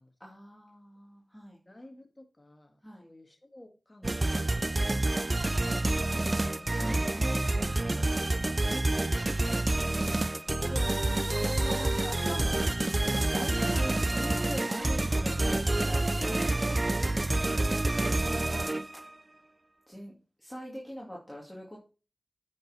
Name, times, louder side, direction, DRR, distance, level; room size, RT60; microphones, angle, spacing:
voice 1, 0.2-1.6 2.8-3.1 5.1-7.4 10.1-12.6 13.3-16.8 18.2-18.8 19.9-21.8, equal, 10° left, -4 dB, 2.4 m, -42 dB
voice 2, 1.7-4.7 17.4-17.9, left 1 dB, 30° left, 4 dB, 1.8 m, -54 dB
sound 1, 4.0-19.1, right 2 dB, 35° right, 0.4 m, -28 dB
9.4 x 5.4 x 4.2 m, 0.35 s
cardioid pair, 50°, 0 cm